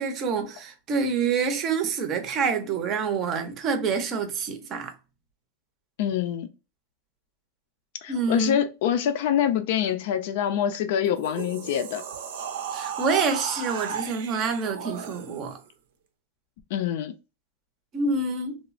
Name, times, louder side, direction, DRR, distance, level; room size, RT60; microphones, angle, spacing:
voice 1, 0.0-4.9 8.1-8.6 12.7-15.6 17.9-18.6, right 5 dB, 30° right, 0.6 m, -27 dB
voice 2, 6.0-6.5 8.0-12.0 16.7-17.1, left 9 dB, 60° left, 0.4 m, -25 dB
sound 1, 11.0-15.6, right 7 dB, 80° right, 0.6 m, -35 dB
3.1 x 2.0 x 2.4 m
supercardioid pair, 160°, 0 cm